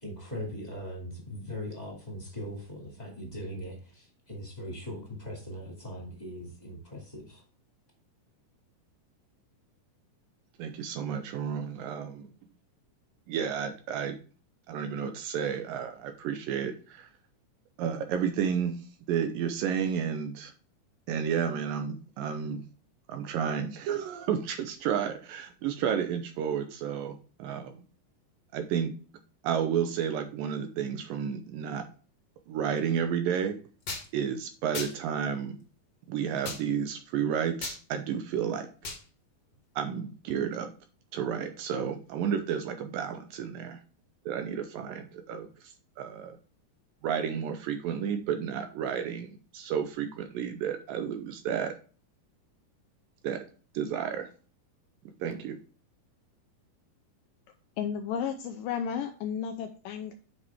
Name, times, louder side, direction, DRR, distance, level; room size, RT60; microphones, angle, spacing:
voice 1, 0.0-7.4, equal, 15° left, -2 dB, 1.7 m, -40 dB
voice 2, 10.6-12.3 13.3-14.2 14.7-17.1 17.8-20.5 21.1-22.6 23.1-27.7 28.5-29.0 29.4-31.9 32.5-33.6 34.1-35.6 36.1-38.7 39.8-40.7 41.1-43.8 44.3-46.4 47.0-51.8 53.2-53.5 53.7-54.3 55.2-55.6, right 8 dB, 75° right, 7 dB, 2.2 m, -31 dB
sound 1, 33.9-34.1 34.7-34.9 36.4-36.6 37.6-37.8 38.8-39.0, left 3 dB, 40° left, 1.5 m, -35 dB
voice 3, 57.8-60.1, left 7 dB, 85° left, 6 dB, 2.0 m, -33 dB
8.1 x 5.4 x 3.5 m, 0.38 s
omnidirectional pair, 4.4 m